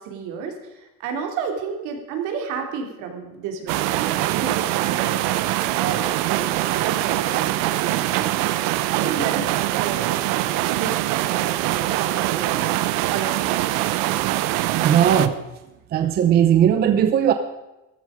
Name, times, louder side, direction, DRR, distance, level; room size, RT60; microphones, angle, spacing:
voice 1, 0.0-5.2 5.5-8.5 8.9-10.0 10.4-13.9, right 6 dB, 65° right, 3 dB, 3.1 m, -32 dB
sound 1, 3.7-15.3, right 15 dB, 80° right, 0.9 m, -23 dB
voice 2, 14.8-15.4 15.9-17.3, right 9 dB, 30° right, 8 dB, 0.6 m, -17 dB
14.5 x 14.0 x 5.1 m, 1.0 s
cardioid pair, 180°, 32 cm